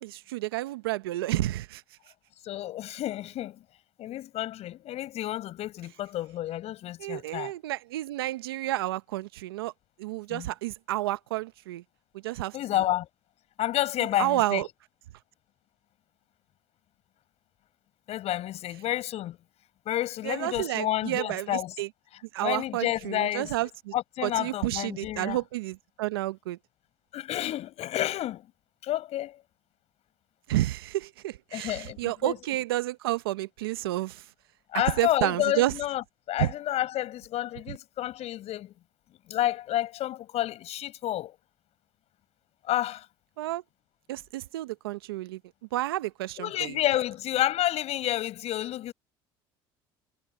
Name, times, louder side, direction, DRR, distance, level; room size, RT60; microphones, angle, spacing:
voice 1, 0.0-1.8 7.0-9.7 10.0-11.8 12.2-12.6 14.2-14.7 20.2-21.9 22.3-23.9 24.2-26.6 30.5-34.2 35.0-35.7 36.4-36.5 37.7-37.8 43.4-43.6 44.1-45.4 45.7-46.8, right 16 dB, 90° right, 0.9 m, -30 dB
voice 2, 2.4-3.6 4.0-7.6 10.3-10.5 12.5-13.1 13.6-14.6 18.1-19.4 19.9-21.7 22.1-23.5 23.9-25.4 27.1-28.4 28.8-29.4 31.5-32.4 34.7-38.7 39.3-41.3 42.7-43.0 46.4-48.9, left 13 dB, 60° left, 6.3 m, -30 dB
hypercardioid pair, 70°, 12 cm